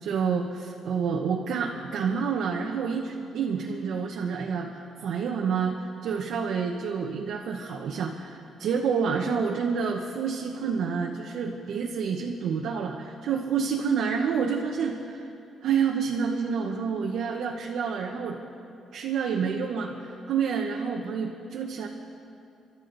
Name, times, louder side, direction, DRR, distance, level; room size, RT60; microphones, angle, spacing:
voice 1, 0.0-15.3 15.6-18.4 18.9-21.9, right 6 dB, 75° right, 1 dB, 1.0 m, -28 dB
28.5 x 12.0 x 3.9 m, 2.8 s
cardioid pair, 90°, 0 cm